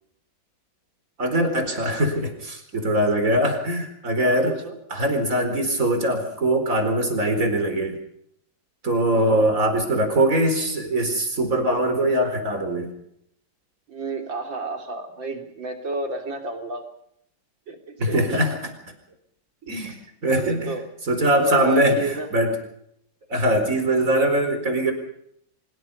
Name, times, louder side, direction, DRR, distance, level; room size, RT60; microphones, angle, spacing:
voice 1, 1.2-4.6 4.9-8.0 8.8-12.9 18.0-18.7 19.7-20.0 20.2-20.7 21.1-22.5 23.3-24.9, right 1 dB, 40° right, 6 dB, 4.8 m, -22 dB
voice 2, 4.2-4.8 9.1-9.5 13.9-16.8 17.7-18.4 20.2-20.8 21.3-22.3, right 3 dB, 70° right, 3 dB, 4.0 m, -32 dB
25.0 x 21.5 x 5.5 m, 0.72 s
omnidirectional pair, 2.1 m